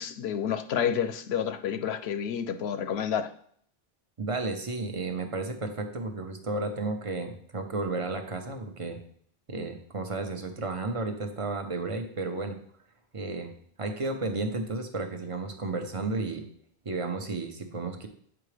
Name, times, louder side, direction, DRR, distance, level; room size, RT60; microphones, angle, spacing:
voice 1, 0.0-3.3, left 8 dB, 80° left, 0.9 m, -29 dB
voice 2, 4.2-9.0 9.5-12.6 13.1-13.5 13.8-16.4 16.8-18.1, right 3 dB, 35° right, 0.8 m, -33 dB
7.8 x 4.8 x 3.3 m
omnidirectional pair, 1.1 m